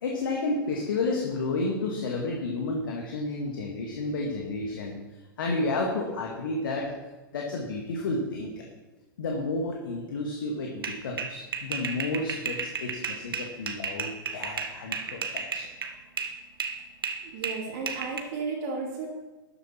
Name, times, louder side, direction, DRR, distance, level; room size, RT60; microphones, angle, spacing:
voice 1, 0.0-4.9 5.4-7.0 7.3-8.6 9.2-15.7, left 2 dB, 60° left, 0 dB, 2.0 m, -31 dB
sound 1, 10.8-16.4 16.6-18.2, right 5 dB, 70° right, 1.3 m, -33 dB
voice 2, 17.2-19.1, right 4 dB, 45° right, -1 dB, 2.7 m, -34 dB
13.0 x 10.5 x 4.5 m, 1.2 s
figure-of-eight pair, 100°, 12 cm